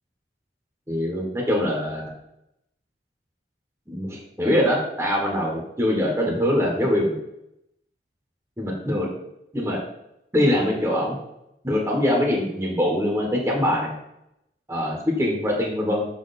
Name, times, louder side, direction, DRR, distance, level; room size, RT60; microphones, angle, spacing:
voice 1, 0.9-2.1 3.9-7.2 8.6-9.1 9.5-9.8 10.3-11.2 11.6-13.9 14.7-16.1, left 1 dB, 15° right, -2 dB, 1.1 m, -23 dB
5.9 x 4.0 x 4.1 m, 0.82 s
head